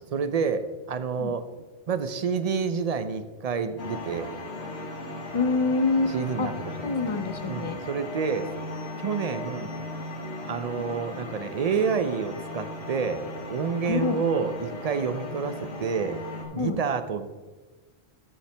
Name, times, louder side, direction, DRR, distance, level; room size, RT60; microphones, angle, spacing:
voice 1, 0.1-1.5 1.9-4.3 6.1-6.9 7.5-8.5 9.0-9.7 10.4-17.3, right 6 dB, 45° right, 10 dB, 0.6 m, -29 dB
sound 1, 3.8-16.5, left 2 dB, 85° left, 1.6 m, -37 dB
voice 2, 5.3-6.5 6.8-7.8 13.9-14.2 16.6-16.8, left 3 dB, 40° left, 9 dB, 0.5 m, -26 dB
14.0 x 5.7 x 3.3 m, 1.3 s
omnidirectional pair, 1.1 m